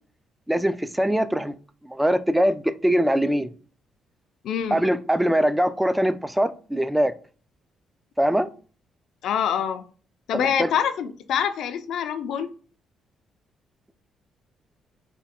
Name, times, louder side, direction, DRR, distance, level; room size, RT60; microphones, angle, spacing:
voice 1, 0.5-1.5 1.9-3.5 4.7-7.1 8.2-8.5 10.6-10.7, equal, 5° right, 0.3 m, -22 dB
voice 2, 4.4-4.8 9.2-9.9 10.3-12.5, left 8 dB, 75° left, 0.4 m, -25 dB
3.4 x 2.2 x 4.2 m
cardioid pair, 90°, 0 cm